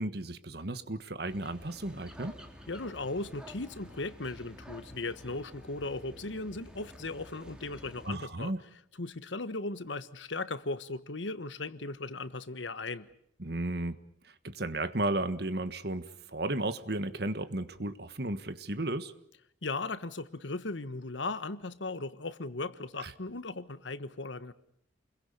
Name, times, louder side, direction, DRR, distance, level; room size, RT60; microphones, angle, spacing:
voice 1, 0.0-2.3 8.1-8.6 13.4-14.0 14.2-19.1 23.0-23.1, right 2 dB, 60° right, 1.5 m, -34 dB
sound 1, 1.3-8.1, equal, 5° right, 3.4 m, -50 dB
voice 2, 2.7-8.5 9.0-13.1 19.6-24.5, left 3 dB, 80° left, 1.3 m, -37 dB
29.0 x 22.0 x 7.0 m
head